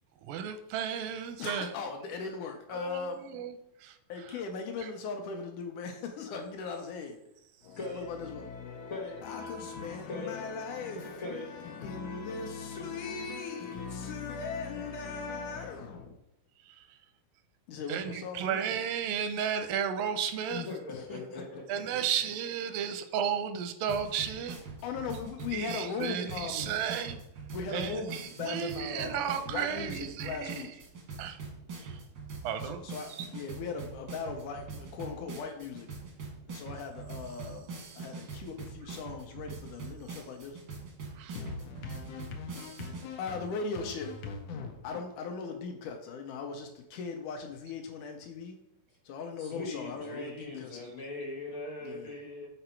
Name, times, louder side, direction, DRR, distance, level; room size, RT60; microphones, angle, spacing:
voice 1, 0.2-1.7 2.7-3.5 3.8-4.0 17.9-20.7 21.7-24.6 25.5-27.2 27.7-30.6 31.2-31.4 31.8-31.9 32.5-32.8 41.2-41.4, right 8 dB, 85° right, 2.3 m, -33 dB
voice 2, 1.4-3.3 4.1-7.2 7.6-16.2 17.7-18.6 20.9-21.4 24.8-26.7 27.5-30.8 32.6-35.9 36.5-37.7 38.0-40.6 41.3-48.6 49.1-50.8 51.8-52.1, left 5 dB, 75° left, 1.9 m, -39 dB
voice 3, 20.5-22.0 49.4-52.5, left 3 dB, 60° left, 1.4 m, -40 dB
sound 1, 23.9-43.1, right 4 dB, 70° right, 1.0 m, -43 dB
6.8 x 4.0 x 4.4 m
omnidirectional pair, 3.9 m